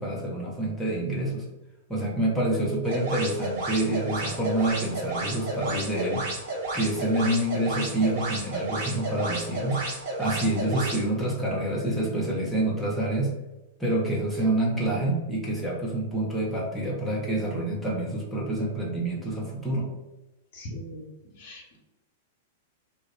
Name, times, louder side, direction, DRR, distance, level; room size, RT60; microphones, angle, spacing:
voice 1, 0.0-1.4 1.9-6.2 6.7-9.8 10.2-13.3 13.8-19.9, right 1 dB, ahead, -6 dB, 0.7 m, -27 dB
sound 1, 2.8-11.0, right 2 dB, 50° right, 0.7 m, -32 dB
voice 2, 20.5-21.1 21.4-21.8, equal, 50° left, -2 dB, 0.8 m, -40 dB
2.3 x 2.1 x 3.2 m, 1.0 s
figure-of-eight pair, 95°, 0 cm